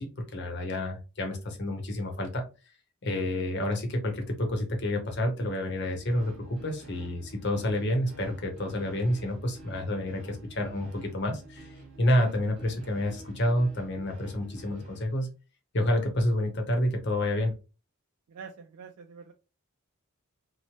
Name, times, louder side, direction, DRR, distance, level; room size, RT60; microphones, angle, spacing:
voice 1, 0.0-2.4 3.0-15.3 15.7-17.5, left 1 dB, 50° left, 3 dB, 0.7 m, -29 dB
sound 1, 5.6-15.1, right 2 dB, 65° right, 1.0 m, -49 dB
voice 2, 18.3-19.3, right 6 dB, 90° right, 3 dB, 0.4 m, -45 dB
2.9 x 2.1 x 2.9 m, 0.31 s
head